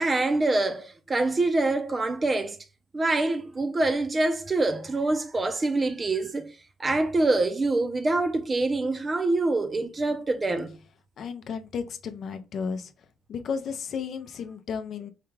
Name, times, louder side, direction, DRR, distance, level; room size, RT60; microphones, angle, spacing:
voice 1, 0.0-2.6 2.9-6.5 6.8-10.7, right 2 dB, 30° right, 0.6 m, -25 dB
voice 2, 11.2-12.9 13.3-15.1, left 6 dB, 65° left, 0.5 m, -33 dB
4.8 x 2.3 x 3.1 m
cardioid pair, 90°, 0 cm